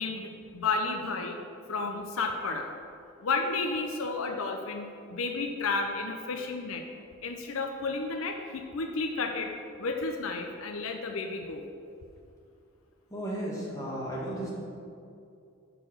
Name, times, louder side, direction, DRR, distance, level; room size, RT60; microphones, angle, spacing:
voice 1, 0.0-1.4 1.7-2.7 3.2-6.8 7.2-9.5 9.8-11.6, left 3 dB, 80° left, 4 dB, 0.6 m, -32 dB
voice 2, 13.1-14.5, right 1 dB, 15° left, -5 dB, 1.5 m, -34 dB
5.8 x 4.5 x 6.4 m, 2.5 s
head